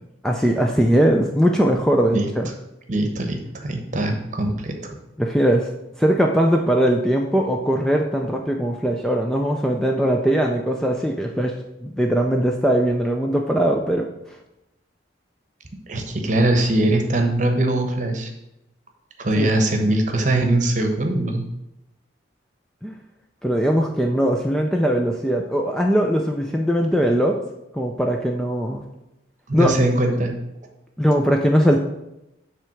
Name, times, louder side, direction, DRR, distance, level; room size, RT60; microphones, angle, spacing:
voice 1, 0.2-2.5 5.2-5.7 6.0-11.5 11.8-14.1 19.3-19.5 22.8-22.9 23.4-27.4 27.7-28.8 29.5-29.7 31.0-31.8, equal, 5° left, 1 dB, 0.4 m, -20 dB
voice 2, 2.9-5.0 15.9-18.3 19.2-21.5 29.5-30.3, right 1 dB, 40° right, 4 dB, 0.9 m, -21 dB
7.5 x 3.4 x 6.3 m, 0.89 s
head